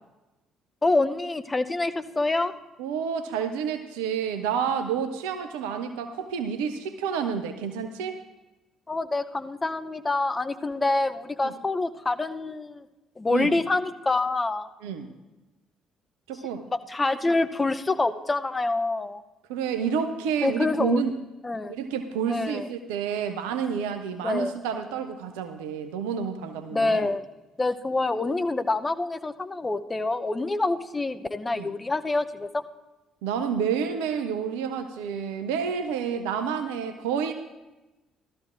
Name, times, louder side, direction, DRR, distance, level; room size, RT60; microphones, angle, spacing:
voice 1, 0.8-2.5 8.9-12.8 13.2-14.7 16.7-19.2 20.4-21.0 21.4-21.7 22.3-22.7 24.2-24.5 26.7-27.2 27.6-32.6, left 2 dB, 20° left, 10 dB, 0.6 m, -26 dB
voice 2, 2.8-8.2 11.4-11.5 13.3-13.6 14.8-15.1 16.3-16.6 19.5-21.1 21.7-27.1 31.5-31.7 33.2-37.3, right 7 dB, 70° right, 7 dB, 0.6 m, -29 dB
16.5 x 13.0 x 2.5 m, 1.1 s
figure-of-eight pair, 45°, 0 cm